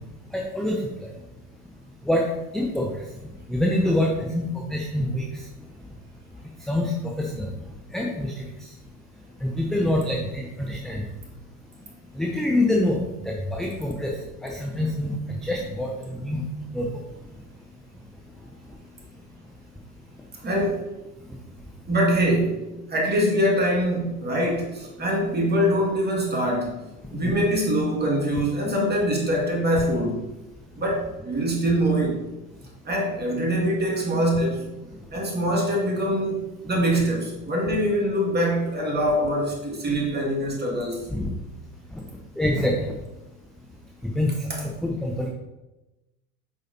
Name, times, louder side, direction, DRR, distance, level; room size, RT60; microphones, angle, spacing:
voice 1, 0.3-0.8 2.1-2.3 2.5-2.9 3.5-5.2 6.7-6.9 7.2-7.5 7.9-8.5 9.4-11.0 12.2-13.0 13.3-14.1 14.4-16.4 16.7-16.9 27.2-27.3 41.1-41.3 42.4-42.7 44.2-44.3 44.8-45.3, left 1 dB, ahead, -1 dB, 0.5 m, -25 dB
voice 2, 20.4-20.9 21.9-26.9 27.1-30.2 30.8-32.3 32.9-34.7 35.1-41.1 44.5-44.6, equal, 20° right, -2 dB, 2.1 m, -24 dB
8.3 x 4.9 x 2.8 m, 1.0 s
hypercardioid pair, 90°, 48 cm